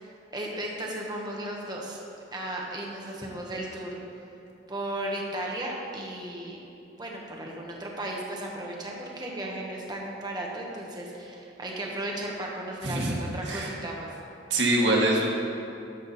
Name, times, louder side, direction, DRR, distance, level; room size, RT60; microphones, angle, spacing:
voice 1, 0.0-2.0 2.3-4.0 4.7-6.6 7.0-14.2, right 1 dB, 25° right, -2 dB, 1.1 m, -35 dB
voice 2, 12.8-13.2 13.5-13.7 14.5-15.3, right 1 dB, 85° right, -2 dB, 1.5 m, -24 dB
12.0 x 6.0 x 4.1 m, 2.7 s
head